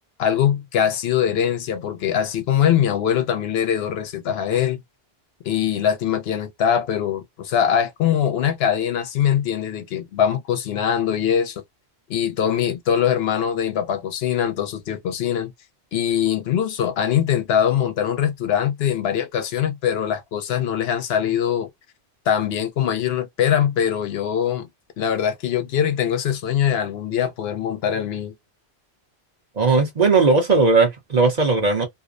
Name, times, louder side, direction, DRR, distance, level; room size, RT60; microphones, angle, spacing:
voice 1, 0.2-4.8 5.4-11.6 12.1-15.5 15.9-21.7 22.3-24.7 25.0-28.3, left 9 dB, 75° left, 0.8 m, -22 dB
voice 2, 29.6-31.9, right 4 dB, 45° right, 0.8 m, -17 dB
2.5 x 2.0 x 2.4 m
omnidirectional pair, 1.1 m